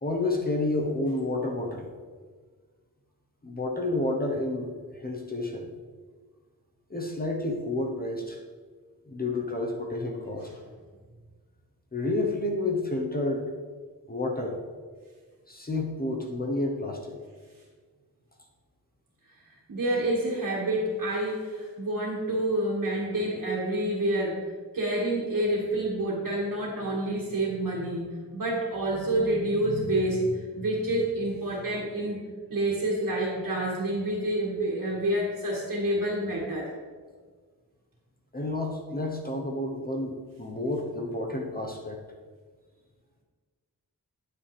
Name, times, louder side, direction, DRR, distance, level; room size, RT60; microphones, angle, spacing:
voice 1, 0.0-1.9 3.4-5.7 6.9-8.4 9.1-10.5 11.9-13.5 14.1-14.6 15.5-17.2 38.3-42.0, left 2 dB, 25° left, 1 dB, 1.0 m, -30 dB
voice 2, 19.7-24.4 24.7-32.2 32.5-36.7, right 1 dB, 55° right, -5 dB, 2.2 m, -28 dB
9.8 x 9.2 x 3.4 m, 1.5 s
wide cardioid pair, 155°, 37 cm